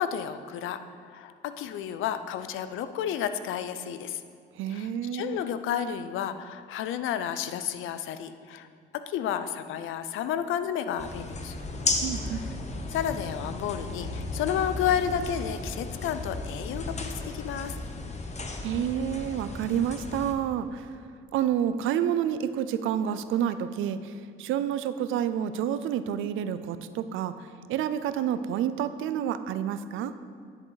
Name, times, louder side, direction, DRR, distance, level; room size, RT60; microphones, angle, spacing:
voice 1, 0.0-4.2 4.7-8.7 8.9-11.6 12.9-17.7, left 9 dB, 85° left, 11 dB, 0.5 m, -31 dB
voice 2, 4.6-5.4 12.0-12.4 18.6-21.0 21.3-30.1, right 9 dB, 85° right, 12 dB, 0.5 m, -29 dB
sound 1, 11.0-20.3, left 3 dB, 35° left, 1.0 m, -36 dB
sound 2, 11.6-18.8, left 2 dB, 50° left, 1.3 m, -39 dB
10.0 x 7.7 x 4.0 m, 2.2 s
cardioid pair, 90°, 20 cm